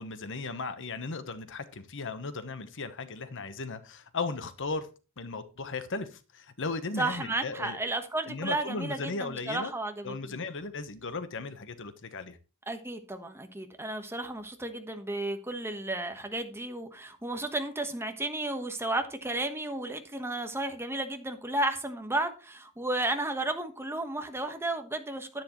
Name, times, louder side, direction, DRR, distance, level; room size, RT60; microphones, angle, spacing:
voice 1, 0.0-4.9 5.2-7.8 8.3-9.7 10.0-12.4, left 3 dB, 60° left, 1.1 m, -36 dB
voice 2, 7.0-10.4 12.7-25.4, right 2 dB, 10° right, 1.3 m, -33 dB
10.5 x 10.5 x 3.1 m
head